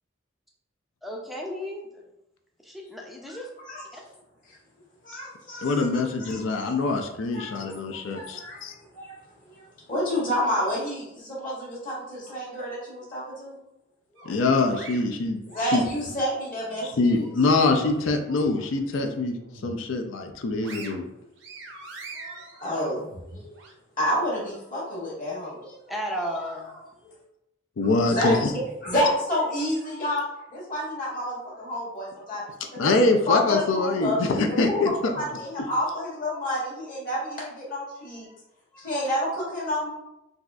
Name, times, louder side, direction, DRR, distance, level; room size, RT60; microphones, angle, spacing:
voice 1, 1.0-2.0 2.6-3.5 3.9-4.0 25.9-26.7, equal, ahead, -1 dB, 0.4 m, -34 dB
voice 2, 3.2-4.0 4.5-4.6 5.0-5.9 6.2-6.8 7.3-7.6 7.9-9.1 9.5-13.6 14.1-14.3 15.5-17.3 20.7-20.9 22.1-23.4 24.0-25.8 26.4-26.6 27.8-30.2 30.5-32.4 32.7-34.2 34.7-34.8 35.1-38.3 38.7-39.9, equal, 40° left, -6 dB, 1.3 m, -30 dB
voice 3, 5.6-8.7 14.2-15.4 15.7-15.8 17.0-19.4 19.6-21.0 27.8-28.5 32.8-35.1, left 3 dB, 70° left, 4 dB, 0.4 m, -24 dB
sound 1, 14.2-16.2 16.6-18.1 18.5-18.6 19.1-19.9 20.3-23.7, right 3 dB, 60° right, 0.6 m, -44 dB
3.9 x 2.4 x 2.3 m, 0.90 s
head